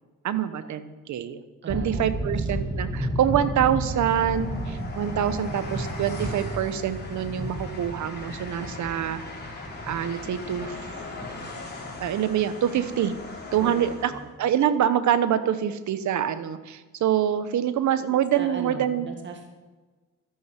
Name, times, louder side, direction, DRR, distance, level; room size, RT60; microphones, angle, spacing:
voice 1, 0.2-9.2 9.9-11.0 12.0-13.2 13.5-14.1 14.4-19.1, right 10 dB, 70° right, 13 dB, 1.1 m, -25 dB
voice 2, 1.6-2.5 13.6-14.3 18.1-19.5, right 4 dB, 40° right, 4 dB, 2.0 m, -39 dB
sound 1, 1.7-13.2, right 1 dB, 10° right, 2.5 m, -33 dB
Train, 3.8-14.3, left 3 dB, 35° left, 3.8 m, -40 dB
13.0 x 11.5 x 6.0 m, 1.3 s
cardioid pair, 90°, 30 cm